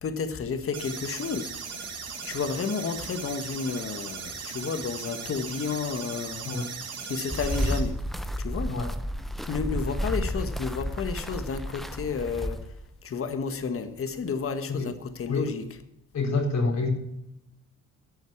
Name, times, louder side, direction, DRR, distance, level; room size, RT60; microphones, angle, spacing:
voice 1, 0.0-1.5 1.8-1.9 2.2-6.5 7.0-8.0 8.4-8.7 9.4-12.7 13.0-15.7, left 5 dB, 45° left, 9 dB, 1.5 m, -31 dB
sound 1, 0.7-7.8, right 5 dB, 55° right, 3.2 m, -38 dB
sound 2, 7.3-12.9, equal, ahead, 0.8 m, -31 dB
voice 2, 16.1-16.9, left 3 dB, 60° left, 1 dB, 4.1 m, -27 dB
12.0 x 8.0 x 7.2 m, 0.84 s
cardioid pair, 90°, 30 cm